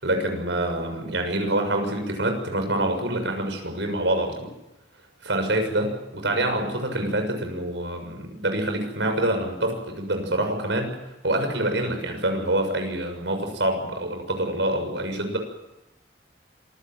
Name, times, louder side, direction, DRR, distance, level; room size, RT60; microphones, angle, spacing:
voice 1, 0.0-4.5 5.2-11.0 11.2-15.4, right 1 dB, 80° right, 5 dB, 6.8 m, -26 dB
26.5 x 16.5 x 9.1 m, 0.96 s
head